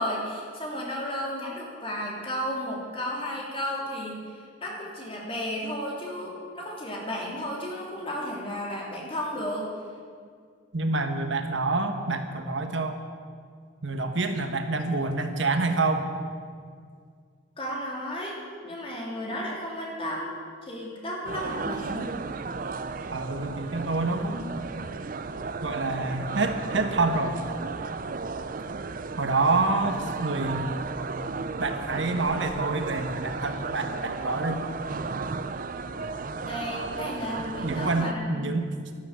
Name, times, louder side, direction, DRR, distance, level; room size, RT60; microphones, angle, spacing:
voice 1, 0.0-9.7 17.6-20.3 20.6-22.1 36.4-38.4, equal, 30° left, -3 dB, 3.3 m, -33 dB
voice 2, 10.7-13.0 13.8-16.1 23.1-24.6 25.6-27.4 29.2-30.7 31.6-34.6 37.5-38.7, right 3 dB, 70° right, 6 dB, 1.3 m, -27 dB
sound 1, 21.2-38.1, right 4 dB, 45° right, 0.5 m, -34 dB
12.0 x 12.0 x 8.2 m, 2.1 s
head